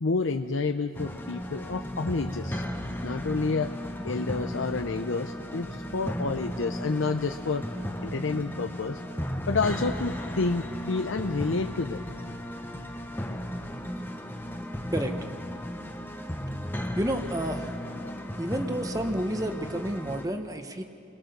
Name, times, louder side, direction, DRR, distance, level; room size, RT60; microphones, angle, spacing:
voice 1, 0.0-2.6 3.0-3.7 4.0-7.7 8.0-9.0 9.5-12.0, left 3 dB, 75° left, 6 dB, 0.7 m, -29 dB
sound 1, 0.9-20.3, equal, 10° left, 0.9 m, -35 dB
voice 2, 16.9-17.7 18.4-20.8, right 1 dB, 15° right, 6 dB, 1.1 m, -30 dB
30.0 x 21.5 x 6.8 m, 2.8 s
head